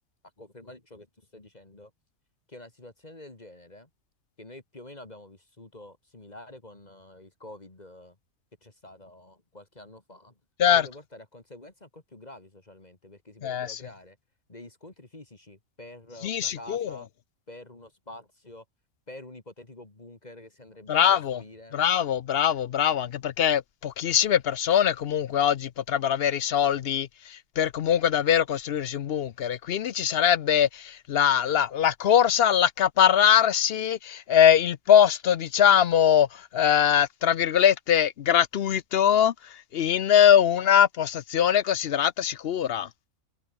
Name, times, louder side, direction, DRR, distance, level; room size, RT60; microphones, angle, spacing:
voice 1, 0.4-1.9 2.5-3.9 4.4-8.2 8.6-10.3 10.7-14.2 14.5-17.1 17.5-18.6 19.1-21.0 21.3-21.8 40.3-40.4, left 1 dB, 30° left, 2.5 m, -47 dB
voice 2, 13.4-13.8 16.2-16.9 20.9-21.4 21.7-39.3 39.7-42.9, left 9 dB, 60° left, 0.7 m, -22 dB
omnidirectional pair, 1.5 m